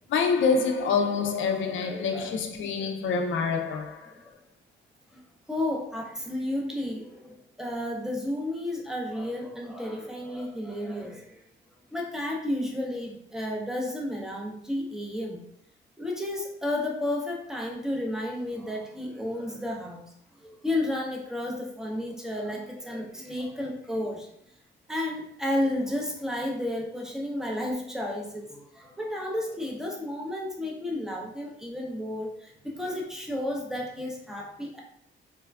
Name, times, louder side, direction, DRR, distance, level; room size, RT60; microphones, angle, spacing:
voice 1, 0.1-4.1, left 5 dB, 65° left, 0.5 m, -26 dB
voice 2, 1.8-2.3 2.8-2.9 5.5-11.4 11.9-15.4 16.0-20.1 20.4-24.3 24.9-32.3 32.6-34.8, left 1 dB, ahead, 0.6 m, -32 dB
3.2 x 2.1 x 2.3 m
cardioid pair, 90°, 21 cm